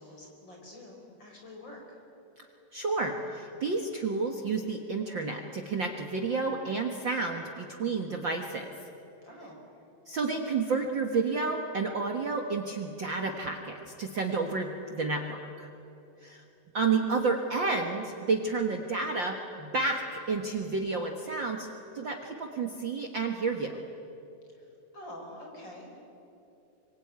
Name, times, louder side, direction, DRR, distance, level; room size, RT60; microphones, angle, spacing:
voice 1, 0.0-2.0 9.2-9.6 24.5-25.9, left 1 dB, 30° left, 0 dB, 5.2 m, -47 dB
voice 2, 2.7-8.7 10.1-15.7 16.2-16.4 16.7-21.7 21.9-23.8, right 4 dB, 80° right, 3 dB, 1.0 m, -30 dB
25.5 x 24.5 x 9.5 m, 2.8 s
omnidirectional pair, 4.5 m